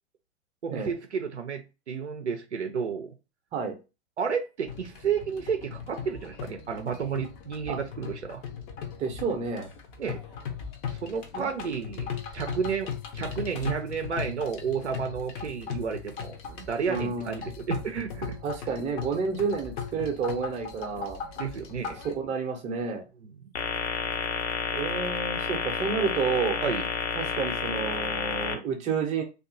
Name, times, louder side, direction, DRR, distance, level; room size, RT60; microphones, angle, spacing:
voice 1, 0.6-3.1 4.2-8.4 10.0-10.2 10.9-12.1 12.3-18.4 21.4-22.0 26.6-26.8 28.5-28.6, right 6 dB, 90° right, 6 dB, 0.5 m, -31 dB
sound 1, 4.7-22.2, left 6 dB, 30° left, 0.5 m, -38 dB
voice 2, 9.0-9.7 11.3-11.5 16.9-17.4 18.4-21.2 21.9-23.0 24.7-26.6 27.2-29.2, right 5 dB, 20° right, 3 dB, 0.6 m, -30 dB
sound 2, 23.5-28.5, left 6 dB, 75° left, 0.8 m, -30 dB
2.6 x 2.4 x 2.5 m, 0.28 s
figure-of-eight pair, 105°, 34 cm